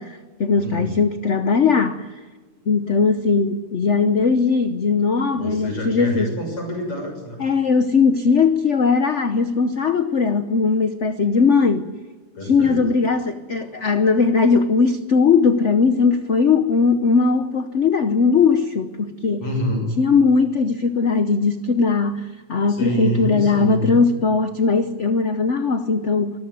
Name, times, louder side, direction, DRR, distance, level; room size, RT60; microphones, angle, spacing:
voice 1, 0.0-2.1 2.7-6.3 7.4-11.9 12.5-19.4 20.0-26.4, left 5 dB, 55° left, 0.8 m, -19 dB
voice 2, 0.5-1.0 5.3-7.4 12.3-12.8 19.4-19.8 22.7-24.0, right 1 dB, 85° left, 7.7 m, -27 dB
24.5 x 14.0 x 9.5 m
omnidirectional pair, 2.4 m